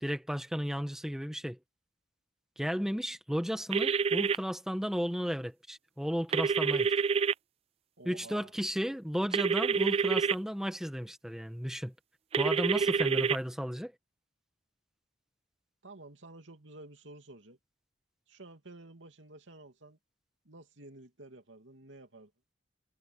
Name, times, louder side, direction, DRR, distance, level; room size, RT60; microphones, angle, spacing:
voice 1, 0.0-1.6 2.6-6.9 8.0-11.9 12.4-13.9, equal, 5° right, 1.4 m, -34 dB
sound 1, 3.7-4.3 6.3-7.3 9.3-10.3 12.3-13.4, right 5 dB, 30° right, 0.3 m, -27 dB
voice 2, 8.0-8.5 12.8-13.3 15.8-17.6 18.3-20.0 20.4-22.3, right 2 dB, 80° right, 2.9 m, -51 dB
head